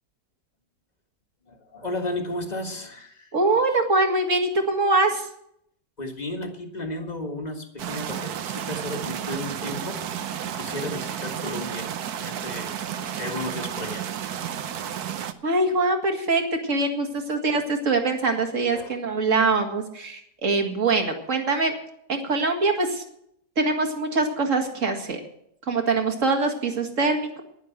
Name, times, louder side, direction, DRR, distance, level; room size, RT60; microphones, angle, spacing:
voice 1, 1.4-3.6 6.0-10.1 10.4-12.7 13.0-14.1 17.2-17.7 18.7-19.0, left 1 dB, 25° left, 4 dB, 1.7 m, -34 dB
voice 2, 3.3-5.3 15.4-21.7 22.1-23.0 23.6-25.2 25.7-27.4, right 3 dB, 45° right, 4 dB, 2.2 m, -23 dB
sound 1, 7.8-15.3, right 9 dB, 65° right, 1.3 m, -32 dB
11.0 x 10.5 x 7.9 m, 0.73 s
omnidirectional pair, 1.9 m